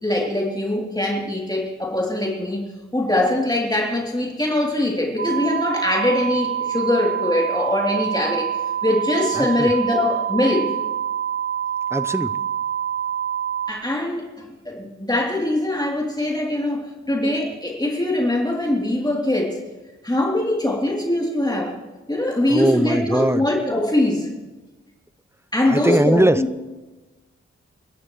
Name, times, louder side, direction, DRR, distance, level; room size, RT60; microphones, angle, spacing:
voice 1, 0.0-2.7 2.9-8.5 8.8-10.7 13.7-14.3 14.7-19.6 20.0-21.7 22.1-24.3 25.5-26.5, left 1 dB, 15° left, -3 dB, 3.3 m, -22 dB
sound 1, 5.2-13.7, right 9 dB, 40° right, 0.7 m, -26 dB
voice 2, 9.4-9.7 11.9-12.4 22.5-23.5 25.7-26.4, right 1 dB, 10° right, 13 dB, 0.7 m, -20 dB
29.0 x 11.0 x 3.2 m, 1.2 s
cardioid pair, 45°, 29 cm